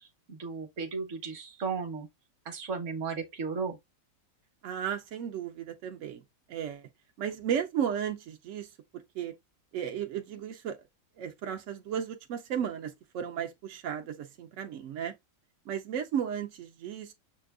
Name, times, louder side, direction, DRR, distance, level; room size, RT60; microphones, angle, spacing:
voice 1, 0.0-2.1 2.4-3.8, right 5 dB, 50° right, 1.1 m, -35 dB
voice 2, 4.6-6.2 6.5-6.9 7.2-8.7 9.1-9.3 9.7-10.8 11.2-15.1 15.7-17.1, right 8 dB, 75° right, 0.7 m, -34 dB
6.8 x 2.5 x 2.3 m
omnidirectional pair, 1.9 m